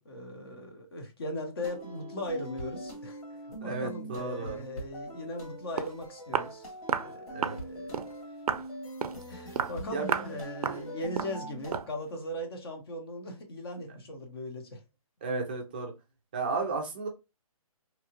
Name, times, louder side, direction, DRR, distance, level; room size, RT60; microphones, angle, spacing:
voice 1, 0.0-3.2 3.6-6.7 7.0-8.1 9.3-14.8, left 1 dB, 40° left, 0.7 m, -39 dB
sound 1, 1.6-11.8, right 1 dB, 70° left, 1.5 m, -43 dB
voice 2, 3.6-4.6 7.3-7.6 9.9-10.2 10.7-10.9 15.2-15.9 16.3-17.1, right 4 dB, 15° right, 0.4 m, -34 dB
Walk footsteps, 5.4-5.5 5.8-6.0 6.3-6.5 6.9-7.1 7.4-7.6 7.9-8.1 8.5-8.7 9.0-9.2 9.6-9.8 10.1-10.3 10.6-10.8 11.2-11.4 11.7-11.9, right 7 dB, 85° right, 0.4 m, -31 dB
2.8 x 2.3 x 2.8 m
hypercardioid pair, 165°, 19 cm